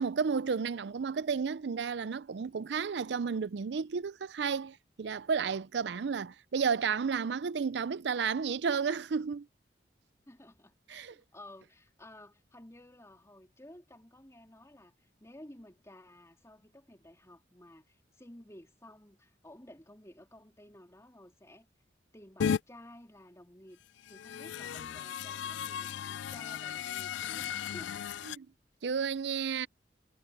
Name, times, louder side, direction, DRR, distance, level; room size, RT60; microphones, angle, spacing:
voice 1, 0.0-9.5 10.9-11.1 28.3-28.5 28.8-29.7, right 6 dB, 65° right, 0.5 m, -32 dB
voice 2, 10.3-21.7 22.1-23.8 24.1-28.1, left 1 dB, 15° left, 3.5 m, -54 dB
sound 1, 22.4-22.6 24.0-28.4, left 8 dB, 80° left, 0.4 m, -35 dB
head